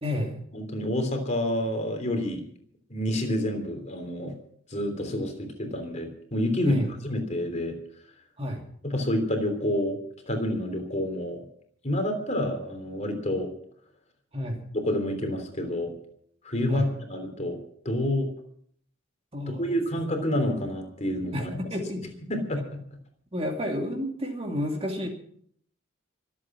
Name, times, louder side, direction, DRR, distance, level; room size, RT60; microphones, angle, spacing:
voice 1, 0.0-0.4 6.6-6.9 8.4-8.7 14.3-14.6 16.7-16.9 19.3-19.8 21.3-22.0 23.3-25.1, left 1 dB, 30° right, 2 dB, 2.6 m, -30 dB
voice 2, 0.5-2.5 2.9-4.3 4.7-7.7 8.8-10.0 10.3-11.4 11.8-13.5 14.7-15.9 16.4-17.6 17.8-18.3 19.6-21.5 22.3-22.6, left 1 dB, 35° left, 4 dB, 3.3 m, -28 dB
25.0 x 8.5 x 6.1 m, 0.63 s
head